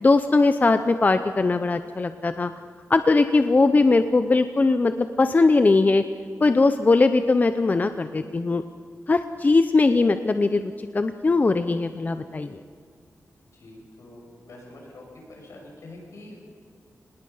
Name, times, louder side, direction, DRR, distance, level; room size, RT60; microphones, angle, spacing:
voice 1, 0.0-2.5 2.9-6.0 6.4-8.6 9.1-12.6, left 3 dB, 30° left, 10 dB, 0.7 m, -20 dB
voice 2, 13.6-15.0 15.4-16.5, left 2 dB, 80° left, 0 dB, 6.9 m, -45 dB
25.5 x 19.5 x 5.6 m, 2.2 s
wide cardioid pair, 125°, 5 cm